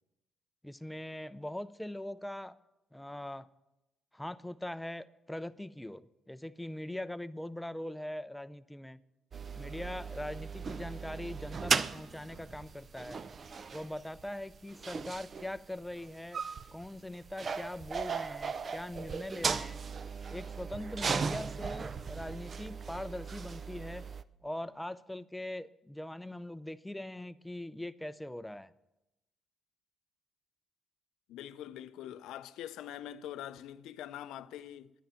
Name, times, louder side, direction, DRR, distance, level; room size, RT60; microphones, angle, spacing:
voice 1, 0.6-2.6 2.9-3.5 4.1-9.0 9.5-13.2 13.7-16.4 16.7-19.8 20.3-24.1 24.4-28.7, left 1 dB, 5° left, 0.5 m, -41 dB
sound 1, 9.3-24.2, right 5 dB, 45° right, 0.5 m, -37 dB
voice 2, 31.3-34.9, left 11 dB, 90° left, 0.5 m, -44 dB
10.5 x 10.0 x 6.9 m
cardioid pair, 90°, 0 cm